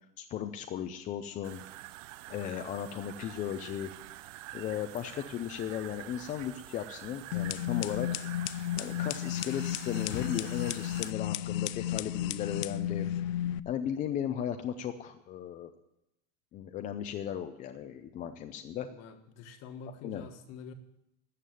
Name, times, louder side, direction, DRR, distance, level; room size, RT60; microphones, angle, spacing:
voice 1, 0.2-1.6 2.3-3.9 4.5-8.1 8.8-13.1 13.7-15.8 16.5-18.9 20.0-20.2, left 10 dB, 20° left, 6 dB, 0.4 m, -36 dB
sound 1, 1.4-11.1, right 16 dB, 75° right, 0.6 m, -47 dB
sound 2, 7.3-13.6, left 12 dB, 85° left, 0.6 m, -33 dB
voice 2, 18.9-20.7, left 4 dB, 40° left, 7 dB, 1.5 m, -46 dB
13.0 x 7.2 x 9.2 m, 0.86 s
supercardioid pair, 160°, 38 cm